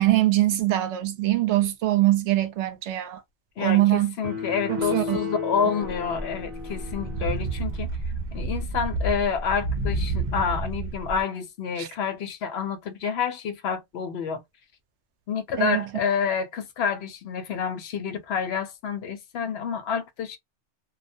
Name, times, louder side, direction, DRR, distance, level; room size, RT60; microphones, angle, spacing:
voice 1, 0.0-3.2 3.6-4.1 4.7-5.2 11.8-11.9 15.6-15.9, right 15 dB, 75° right, 0.9 m, -22 dB
voice 2, 3.6-7.9 8.3-14.4 15.3-20.4, left 6 dB, 70° left, 0.8 m, -28 dB
sound 1, 4.2-7.8, left 5 dB, 20° right, 0.9 m, -34 dB
sound 2, 5.8-11.2, right 2 dB, 55° right, 0.5 m, -30 dB
2.3 x 2.1 x 2.5 m
omnidirectional pair, 1.2 m